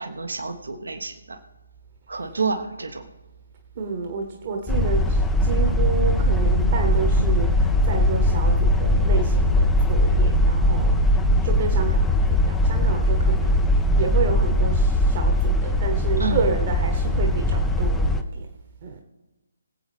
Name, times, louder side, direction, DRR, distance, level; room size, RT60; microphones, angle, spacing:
voice 1, 0.0-1.4 2.1-3.1 16.2-16.5, right 4 dB, 65° right, 7 dB, 1.2 m, -29 dB
voice 2, 3.7-18.5 18.8-19.0, right 5 dB, 35° right, 2 dB, 1.3 m, -30 dB
sound 1, 4.7-18.2, left 1 dB, 5° left, 0.5 m, -20 dB
sound 2, 5.4-11.5, right 1 dB, 85° right, 0.7 m, -31 dB
21.0 x 8.2 x 3.5 m, 1.1 s
figure-of-eight pair, 145°, 0 cm